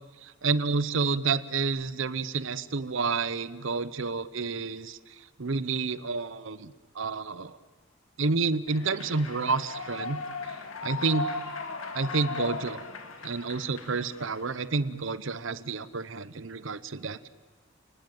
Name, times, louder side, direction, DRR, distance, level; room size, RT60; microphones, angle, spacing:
voice 1, 0.2-7.6 8.2-10.2 10.8-11.3 11.9-12.8 13.2-17.3, right 4 dB, 70° right, 15 dB, 0.8 m, -29 dB
Human voice / Clapping / Cheering, 8.7-14.6, left 3 dB, 90° left, 2.5 m, -37 dB
29.5 x 19.5 x 9.2 m, 1.5 s
head